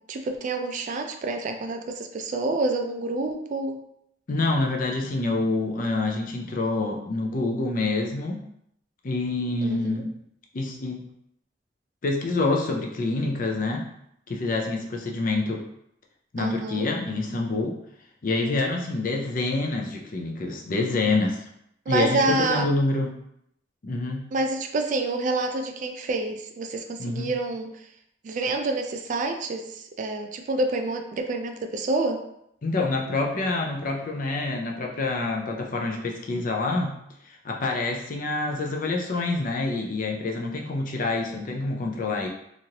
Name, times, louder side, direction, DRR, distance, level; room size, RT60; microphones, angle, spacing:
voice 1, 0.1-3.8 9.6-10.0 16.4-16.8 21.9-22.7 24.3-27.7 28.2-32.2, right 2 dB, 45° right, 5 dB, 0.3 m, -28 dB
voice 2, 4.3-8.4 9.0-10.1 10.5-11.0 12.0-13.9 14.3-15.6 16.3-17.7 18.2-21.4 21.9-23.1 23.8-24.3 27.0-27.3 32.6-37.0 37.2-42.3, left 2 dB, 50° left, 1 dB, 0.5 m, -27 dB
3.0 x 2.5 x 2.8 m, 0.75 s
head